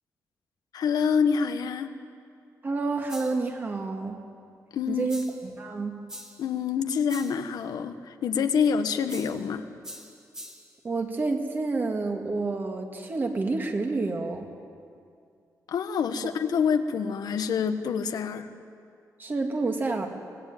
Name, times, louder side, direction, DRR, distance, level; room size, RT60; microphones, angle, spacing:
voice 1, 0.7-1.9 4.7-5.1 6.4-9.7 15.7-18.5, left 6 dB, 90° left, 8 dB, 1.3 m, -26 dB
voice 2, 2.6-4.2 4.9-5.9 10.8-14.5 19.2-20.1, right 3 dB, 30° right, 3 dB, 2.1 m, -29 dB
sound 1, 3.1-3.5 5.1-5.5 6.1-6.5 7.1-7.5 9.1-9.5 9.8-10.8, equal, 10° right, 1.8 m, -44 dB
24.0 x 18.0 x 9.2 m, 2.4 s
wide cardioid pair, 165°, 7 cm